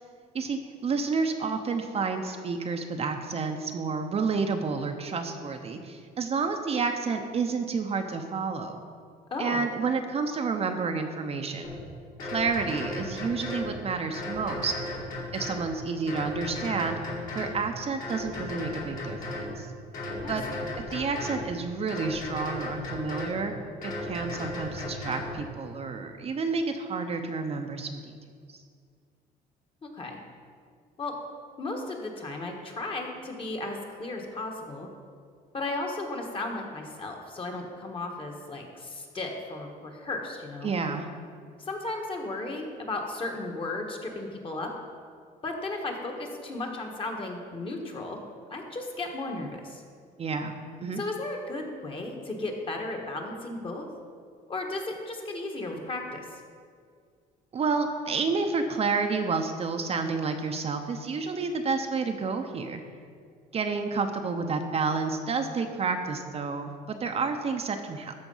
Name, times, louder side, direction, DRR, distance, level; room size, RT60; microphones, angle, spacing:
voice 1, 0.3-8.8 9.4-11.7 12.2-14.7 15.3-17.0 17.3-19.7 20.3-20.4 20.9-23.6 23.8-28.2 28.5-28.6 40.6-41.1 50.2-50.5 50.8-51.0 57.5-62.8 63.5-68.1, right 4 dB, 35° right, 5 dB, 0.7 m, -30 dB
voice 2, 9.3-9.6 20.2-20.7 29.8-30.2 31.0-31.1 31.6-34.9 35.5-40.7 41.6-44.7 45.4-48.2 48.5-49.8 51.0-53.9 54.5-56.2, left 2 dB, 30° left, 2 dB, 1.4 m, -35 dB
sound 1, 11.6-11.8 12.2-13.7 14.1-15.7 16.1-17.6 18.0-19.5 19.9-21.5 21.9-23.4 23.8-25.3, left 2 dB, 55° left, 2.6 m, -35 dB
13.5 x 4.4 x 5.5 m, 2.1 s
cardioid pair, 110°, 17 cm